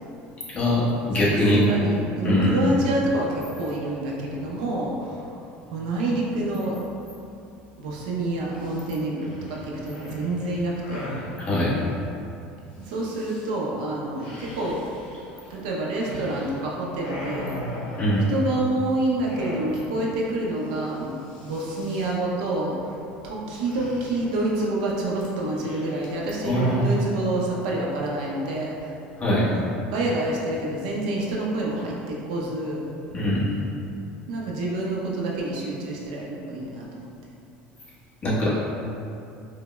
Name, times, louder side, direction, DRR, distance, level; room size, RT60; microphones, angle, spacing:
voice 1, 0.5-1.6 2.2-2.5 11.4-11.8 18.0-18.3 26.4-26.9 29.2-29.5 33.1-33.5 38.2-38.5, left 1 dB, 30° left, -8 dB, 1.0 m, -22 dB
voice 2, 1.2-6.8 7.8-11.1 12.8-14.8 15.5-17.8 18.3-29.0 29.6-32.9 34.3-37.1, right 1 dB, 85° right, -3 dB, 0.6 m, -28 dB
sound 1, 8.6-8.8 9.2-11.3 12.8-13.5 14.2-16.6 16.9-18.8 19.2-20.0 20.3-20.4 20.6-20.9 21.2-22.1 23.6-24.5 25.2-26.9, left 1 dB, 80° left, 0.9 m, -38 dB
5.0 x 2.0 x 2.2 m, 2.6 s
supercardioid pair, 115°, 4 cm